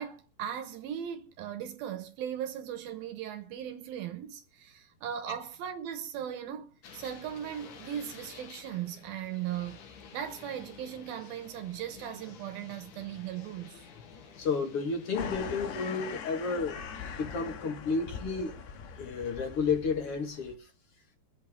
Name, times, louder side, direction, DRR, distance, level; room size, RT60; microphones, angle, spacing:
voice 1, 0.0-9.8 10.1-13.9, right 10 dB, 70° right, 2.8 m, -38 dB
sound 1, 6.8-16.2, left 6 dB, 60° left, 2.7 m, -51 dB
voice 2, 14.4-16.8 17.1-18.5 19.0-20.6, left 4 dB, 40° left, 2.6 m, -31 dB
sound 2, 15.1-20.5, left 6 dB, 85° left, 3.6 m, -41 dB
24.0 x 8.2 x 3.7 m
omnidirectional pair, 4.6 m